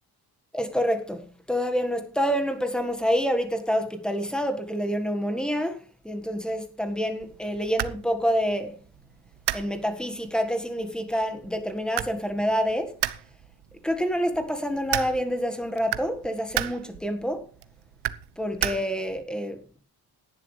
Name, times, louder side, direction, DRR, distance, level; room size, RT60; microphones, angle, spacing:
voice 1, 0.5-5.8 6.0-8.8 9.5-12.9 13.8-17.4 18.4-19.6, equal, ahead, 1.7 m, -27 dB
sound 1, 7.2-19.2, right 13 dB, 80° right, 1.0 m, -35 dB
17.0 x 11.5 x 3.3 m
wide cardioid pair, 165°, 40 cm